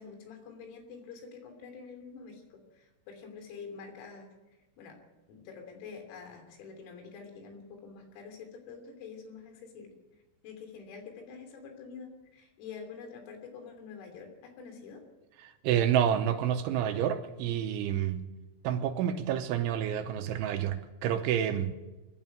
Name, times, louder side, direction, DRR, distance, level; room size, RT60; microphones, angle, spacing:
voice 1, 0.0-4.3 4.8-5.0 5.3-9.9 10.4-15.0, left 5 dB, 90° left, 5.9 m, -47 dB
voice 2, 15.4-18.3 18.6-21.7, right 9 dB, 80° right, 3.0 m, -29 dB
23.0 x 12.5 x 9.2 m
omnidirectional pair, 6.0 m